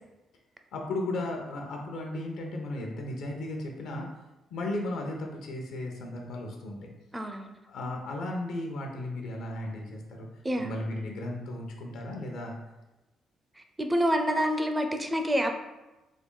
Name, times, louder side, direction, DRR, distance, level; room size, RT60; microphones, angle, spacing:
voice 1, 0.7-4.1 4.5-6.9 7.7-10.3 10.6-12.6, left 1 dB, 80° left, 1 dB, 0.7 m, -35 dB
voice 2, 7.1-7.6 10.4-10.7 13.8-15.5, equal, 15° right, 5 dB, 0.4 m, -27 dB
3.6 x 2.2 x 3.7 m, 1.0 s
cardioid pair, 90°, 0 cm